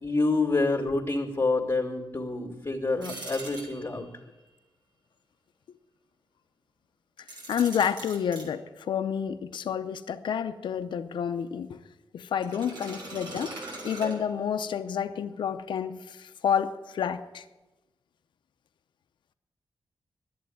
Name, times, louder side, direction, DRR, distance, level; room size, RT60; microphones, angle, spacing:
voice 1, 0.0-4.1, left 3 dB, 30° left, 2.1 m, -27 dB
sound 1, 3.0-4.2 7.2-8.5 12.4-14.7, right 2 dB, 75° right, 4.2 m, -41 dB
voice 2, 7.5-11.8 12.1-13.6 13.8-17.4, left 8 dB, 85° left, 0.6 m, -29 dB
11.0 x 8.6 x 9.2 m
cardioid pair, 80°, 8 cm